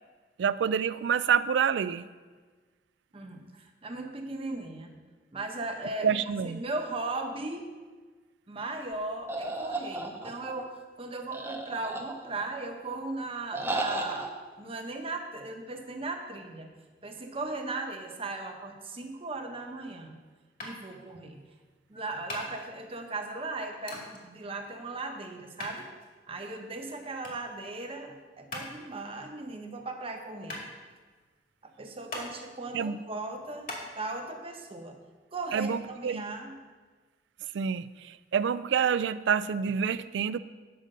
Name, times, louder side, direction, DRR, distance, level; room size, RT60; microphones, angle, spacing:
voice 1, 0.4-2.0 6.0-6.6 32.7-33.0 35.5-36.2 37.5-40.4, right 7 dB, 80° right, 15 dB, 0.3 m, -27 dB
voice 2, 3.1-4.9 5.3-7.7 8.5-14.3 14.6-16.7 17.0-20.2 20.6-21.4 21.9-25.9 26.3-30.6 31.6-33.7 33.9-35.0 35.3-36.6, right 2 dB, 35° right, 4 dB, 0.9 m, -37 dB
sound 1, 9.3-10.6 11.3-12.5 13.5-14.3, right 2 dB, 15° right, 0.8 m, -34 dB
sound 2, 20.6-33.8, left 2 dB, 55° left, 2.1 m, -44 dB
9.0 x 5.1 x 6.5 m, 1.4 s
head